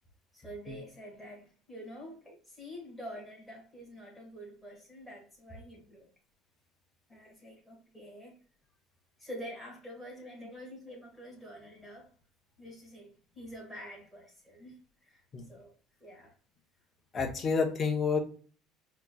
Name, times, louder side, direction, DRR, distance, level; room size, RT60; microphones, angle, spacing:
voice 1, 0.3-6.1 7.1-8.4 9.2-12.1 12.6-15.2 15.5-15.7 16.0-16.3, equal, ahead, 1.6 m, -47 dB
voice 2, 17.1-18.2, left 5 dB, 20° left, 0.7 m, -29 dB
4.7 x 2.9 x 2.2 m
cardioid pair, 175°, 0 cm